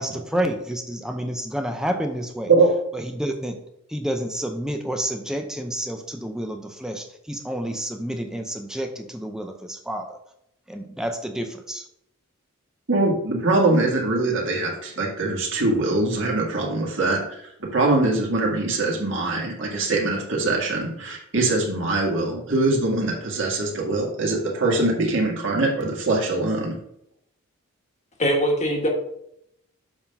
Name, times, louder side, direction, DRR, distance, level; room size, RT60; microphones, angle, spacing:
voice 1, 0.0-2.5 2.9-3.6 3.9-10.2 10.7-11.8, right 1 dB, 5° right, 4 dB, 0.6 m, -29 dB
voice 2, 12.9-17.2 17.6-26.7, right 2 dB, 55° right, -2 dB, 1.9 m, -22 dB
voice 3, 28.2-28.9, equal, 30° left, 1 dB, 1.3 m, -21 dB
7.0 x 3.7 x 5.5 m, 0.76 s
head